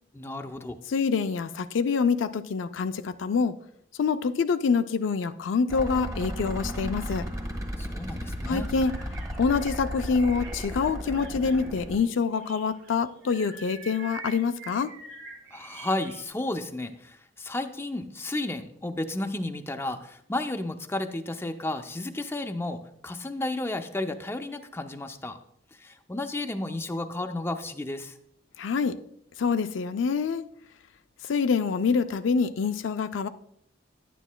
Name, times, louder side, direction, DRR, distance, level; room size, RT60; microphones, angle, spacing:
voice 1, 0.1-0.8 7.8-8.7 15.5-25.4 25.7-28.2, left 2 dB, 15° left, 7 dB, 0.4 m, -33 dB
voice 2, 0.9-3.6 4.0-7.3 8.5-8.9 9.4-14.9 28.6-29.0 29.4-30.4 31.2-33.3, left 5 dB, 85° left, 10 dB, 0.4 m, -26 dB
sound 1, 5.7-12.0, equal, 20° right, 1.4 m, -35 dB
sound 2, 8.6-16.2, right 4 dB, 80° right, 1.7 m, -46 dB
10.5 x 9.1 x 2.2 m, 0.72 s
head